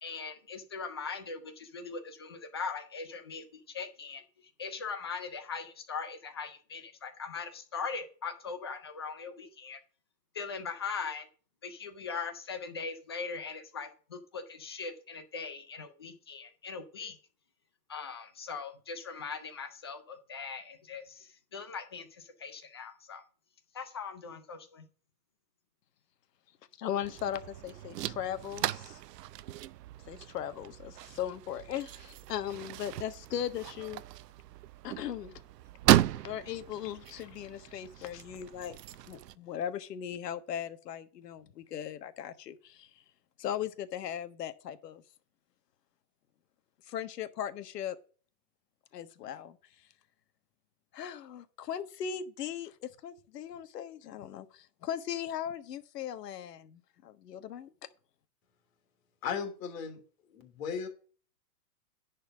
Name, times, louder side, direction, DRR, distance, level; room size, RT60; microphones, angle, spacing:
voice 1, 0.0-4.2 4.6-9.8 10.3-11.2 11.6-17.2 17.9-22.1 22.4-23.2 23.7-24.8, left 5 dB, 20° left, 0.3 m, -40 dB
voice 2, 26.8-29.0 30.1-34.0 34.8-35.4 36.2-38.8 39.0-42.9 43.4-45.0 46.9-47.9 48.9-49.6 50.9-57.7, left 10 dB, 75° left, 1.4 m, -38 dB
sound 1, 27.0-39.3, right 14 dB, 85° right, 0.7 m, -34 dB
voice 3, 59.2-60.0 60.3-60.9, left 7 dB, 55° left, 3.1 m, -36 dB
10.5 x 4.4 x 6.2 m
supercardioid pair, 160°, 48 cm